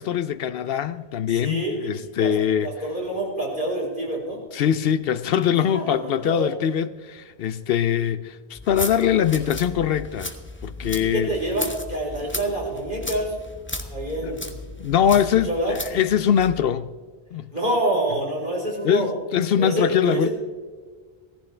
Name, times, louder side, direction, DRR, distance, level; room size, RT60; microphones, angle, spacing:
voice 1, 0.0-2.7 4.5-10.3 10.6-11.3 14.2-14.3 14.8-16.9 17.3-17.5 18.8-20.3, left 9 dB, 70° left, 0.7 m, -22 dB
voice 2, 1.3-2.3 2.6-4.4 5.7-6.5 10.8-13.3 13.9-14.5 15.5-15.7 17.5-19.1 19.6-20.3, right 1 dB, 55° right, 4.5 m, -27 dB
sound 1, 8.5-16.6, left 2 dB, 10° left, 1.0 m, -35 dB
17.0 x 15.0 x 3.3 m
omnidirectional pair, 1.0 m